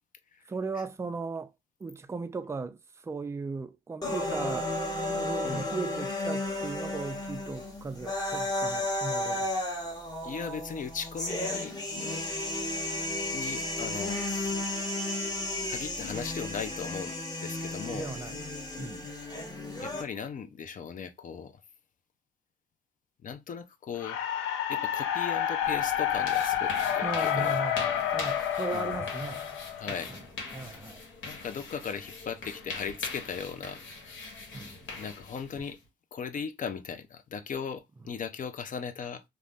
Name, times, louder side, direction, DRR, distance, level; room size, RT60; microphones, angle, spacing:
voice 1, 0.5-1.5 1.8-9.5 17.9-18.4 18.8-19.1 27.0-29.5 29.8-30.2 30.5-31.0 34.5-34.8, right 4 dB, 15° right, 0.3 m, -37 dB
sound 1, 4.0-20.0, left 1 dB, 20° left, 1.0 m, -33 dB
voice 2, 10.2-11.7 13.3-14.2 15.6-17.2 17.4-18.1 19.8-21.5 23.2-24.2 24.7-27.6 28.7-28.9 29.7-30.1 31.3-33.8 35.0-35.8 36.1-39.2, left 6 dB, 40° left, 0.5 m, -37 dB
sound 2, 24.0-30.1, left 10 dB, 90° left, 0.5 m, -29 dB
sound 3, 25.6-35.8, left 3 dB, 75° left, 1.1 m, -42 dB
2.5 x 2.0 x 3.4 m
cardioid pair, 90°, 20 cm